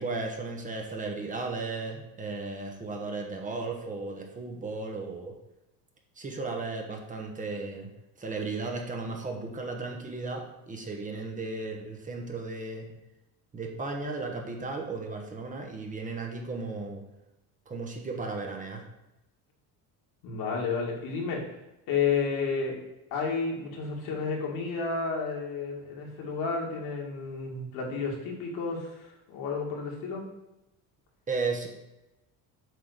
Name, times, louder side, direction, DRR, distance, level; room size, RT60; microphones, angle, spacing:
voice 1, 0.0-5.3 6.2-7.9 8.2-12.9 13.5-17.0 17.7-18.8 31.3-31.7, right 3 dB, 20° right, 1 dB, 1.1 m, -35 dB
voice 2, 20.2-21.6 21.9-22.8 23.1-30.2, left 5 dB, 75° left, -1 dB, 2.2 m, -31 dB
7.7 x 3.8 x 6.5 m, 0.94 s
cardioid pair, 150°, 38 cm